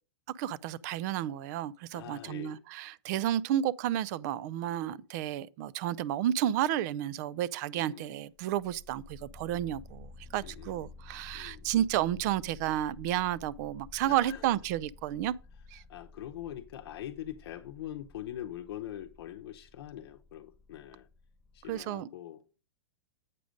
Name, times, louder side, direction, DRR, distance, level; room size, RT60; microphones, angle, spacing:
voice 1, 0.4-15.3 15.7-15.8 21.7-22.1, right 12 dB, 40° right, 0.4 m, -31 dB
voice 2, 1.9-2.6 4.7-5.1 7.7-8.2 10.4-10.9 11.3-11.7 14.1-14.5 15.8-21.1 21.5-22.6, left 12 dB, 60° left, 0.8 m, -43 dB
sound 1, 8.4-21.9, left 3 dB, 10° left, 0.9 m, -53 dB
8.3 x 5.0 x 5.1 m
hypercardioid pair, 145°, 14 cm